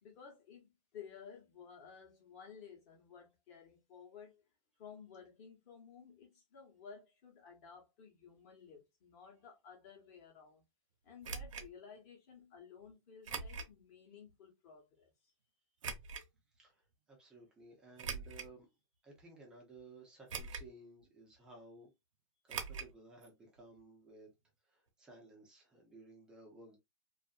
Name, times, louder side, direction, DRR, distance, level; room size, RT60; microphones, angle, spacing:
voice 1, 0.0-4.4 4.8-10.6 11.0-15.1, left 6 dB, 25° left, 0.9 m, -55 dB
sound 1, 11.2-11.7 13.2-13.7 14.3-14.4 15.8-16.3 18.0-18.6 19.2-19.3 20.3-20.8 21.0-21.1 22.5-22.9 23.2-23.3 23.6-23.7, right 5 dB, 70° right, 0.7 m, -42 dB
voice 2, 16.6-18.7 19.0-21.9 22.4-24.3 24.7-26.8, right 2 dB, 5° right, 0.4 m, -57 dB
2.6 x 2.4 x 2.3 m
hypercardioid pair, 175°, 17 cm